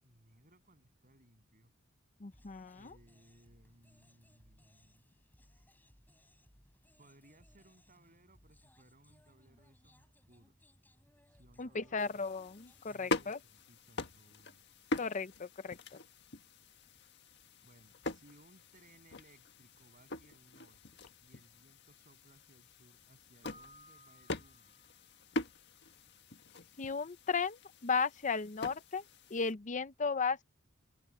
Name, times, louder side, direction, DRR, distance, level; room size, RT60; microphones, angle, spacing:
voice 1, 0.0-1.7 2.7-5.1 7.0-10.6 11.3-12.3 12.9-14.6 17.6-24.7, right 1 dB, 40° right, 8.0 m, -64 dB
voice 2, 2.2-2.9 11.6-13.4 14.9-15.8 26.8-29.0 29.3-30.4, left 5 dB, 40° left, 0.7 m, -35 dB
sound 1, 2.3-13.0, left 1 dB, 10° left, 7.4 m, -66 dB
sound 2, 12.0-29.5, left 2 dB, 55° left, 1.6 m, -44 dB
Keyboard (musical), 23.4-25.2, equal, 25° right, 1.1 m, -59 dB
head